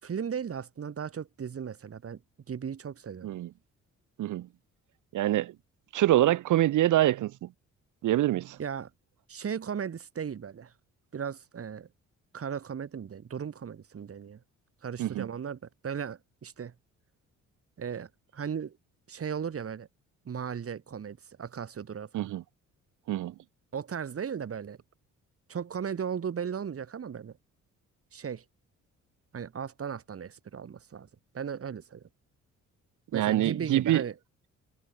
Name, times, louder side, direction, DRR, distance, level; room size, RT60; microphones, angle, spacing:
voice 1, 0.0-2.2 2.5-3.3 8.6-8.9 9.3-10.7 11.1-11.9 12.3-14.4 14.8-16.7 17.8-18.8 19.1-19.9 20.2-22.3 23.7-24.8 25.5-27.3 28.1-28.4 29.3-31.1 31.3-32.1 33.1-34.1, right 7 dB, 50° right, 6.1 m, -36 dB
voice 2, 5.1-5.5 5.9-7.5 8.0-8.6 15.0-15.3 22.1-22.4 23.1-23.3 33.1-34.0, right 14 dB, 80° right, 3.0 m, -25 dB
cardioid pair, 90°, 30 cm